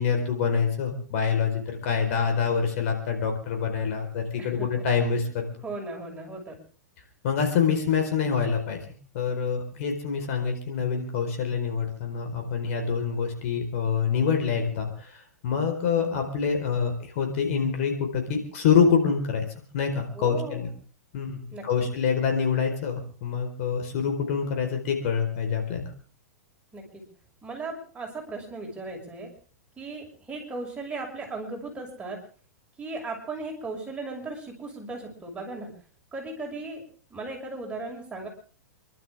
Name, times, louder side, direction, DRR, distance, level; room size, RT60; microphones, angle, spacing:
voice 1, 0.0-5.4 7.2-8.8 9.1-19.4 19.7-20.7 21.1-25.9, left 6 dB, 55° left, 4 dB, 4.5 m, -26 dB
voice 2, 5.6-6.6 20.1-20.6 21.5-21.8 26.7-27.0 27.4-29.3 29.8-32.2 32.8-35.7 36.1-36.8 37.1-38.3, right 3 dB, 10° right, -1 dB, 6.3 m, -37 dB
28.5 x 12.0 x 3.6 m, 0.42 s
figure-of-eight pair, 105°, 9 cm